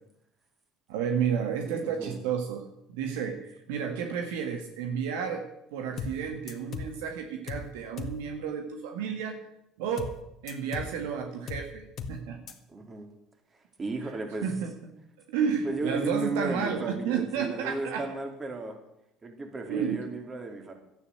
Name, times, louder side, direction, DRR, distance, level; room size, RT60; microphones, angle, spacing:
voice 1, 0.9-2.6 2.9-9.4 9.8-10.1 10.4-12.4 14.4-14.7 15.3-18.2 19.7-20.0, right 7 dB, 80° right, 4 dB, 1.8 m, -31 dB
voice 2, 1.7-2.2 12.7-13.1 13.8-14.5 15.6-18.8 19.2-20.7, right 2 dB, 30° right, 4 dB, 3.5 m, -34 dB
sound 1, 6.0-6.2 6.5-7.0 7.5-7.7 8.0-8.2 10.0-10.2 10.5-11.0 11.5-11.7 12.0-12.2 12.5-12.6, left 5 dB, 50° left, 1.8 m, -37 dB
12.5 x 9.6 x 8.0 m, 0.82 s
hypercardioid pair, 75°, 0 cm